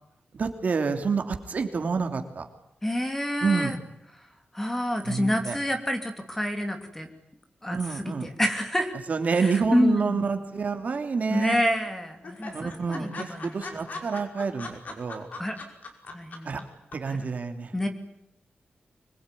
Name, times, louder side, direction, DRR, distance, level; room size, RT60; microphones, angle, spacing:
voice 1, 0.3-2.5 3.4-3.7 5.0-5.6 7.7-8.3 9.1-11.6 12.5-15.2 16.4-16.6 16.9-17.9, right 5 dB, 50° right, 6 dB, 3.0 m, -28 dB
voice 2, 2.8-3.7 4.2-4.3 4.5-7.1 7.6-8.9 9.3-10.3 11.3-13.6 15.4-15.5 16.1-16.6 17.1-17.2 17.7-17.9, equal, 10° left, 5 dB, 2.9 m, -28 dB
sound 1, 10.6-11.2 11.5-11.6 11.9-12.0 12.2-16.6 16.9-17.0, left 3 dB, 55° left, 5.4 m, -39 dB
25.5 x 22.0 x 10.0 m, 0.80 s
wide cardioid pair, 180°, 3 cm